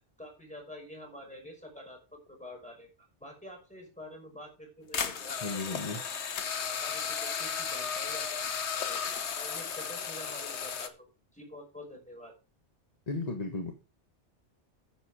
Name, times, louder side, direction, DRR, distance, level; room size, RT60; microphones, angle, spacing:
voice 1, 0.2-2.9 3.2-6.1 6.8-11.1 11.3-12.3, left 1 dB, 5° left, 1 dB, 5.5 m, -48 dB
sound 1, 4.9-10.9, left 6 dB, 65° left, 1.3 m, -34 dB
voice 2, 5.4-6.0 13.1-13.7, left 3 dB, 35° left, 4 dB, 1.5 m, -34 dB
9.9 x 8.1 x 5.0 m, 0.31 s
omnidirectional pair, 1.2 m